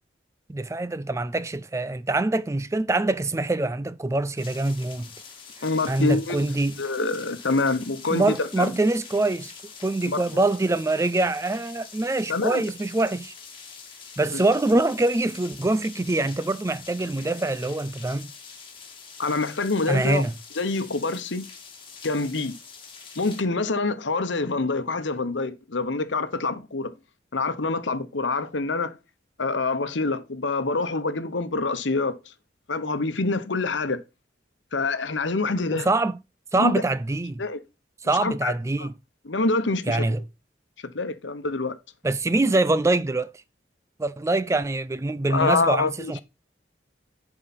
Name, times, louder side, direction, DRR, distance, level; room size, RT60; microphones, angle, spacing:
voice 1, 0.5-5.1 5.9-6.8 8.1-9.5 9.8-13.3 14.2-18.3 19.9-20.3 35.8-36.2 36.5-37.4 38.0-38.9 39.9-40.2 42.0-43.3 44.0-46.2, right 2 dB, 15° right, 0.3 m, -24 dB
sound 1, 4.4-23.4, left 5 dB, 30° left, 1.9 m, -45 dB
voice 2, 5.6-6.5 6.8-8.7 10.1-10.2 12.3-12.6 14.3-14.4 19.2-20.2 20.6-21.5 22.0-22.5 23.2-26.9 27.3-29.0 29.4-32.2 32.7-34.0 34.7-35.9 36.6-36.8 37.4-37.6 38.2-38.5 38.8-38.9 39.3-40.1 40.9-41.8 45.3-46.1, left 3 dB, 85° left, 1.0 m, -26 dB
11.0 x 5.0 x 4.2 m
head